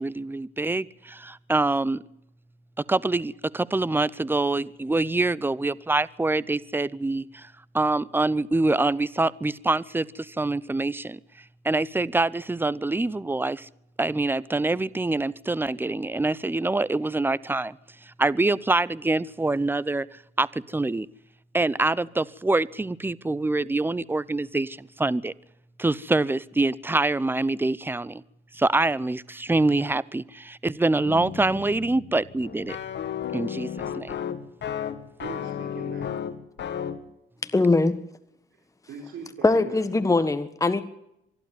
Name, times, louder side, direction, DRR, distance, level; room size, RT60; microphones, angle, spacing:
voice 1, 0.0-2.0 2.9-11.2 11.6-13.7 14.0-17.8 18.0-20.1 20.4-21.1 21.5-25.3 25.8-28.2 28.5-32.8 33.3-33.7 33.9-34.1, right 2 dB, 10° right, 0.7 m, -25 dB
sound 1, 31.0-37.0, left 8 dB, 65° left, 2.0 m, -33 dB
voice 2, 35.2-36.1 38.9-39.8, right 5 dB, 70° right, 4.8 m, -40 dB
voice 3, 37.5-38.0 39.4-40.8, left 3 dB, 15° left, 1.6 m, -21 dB
25.0 x 12.0 x 9.5 m
cardioid pair, 90°, 20 cm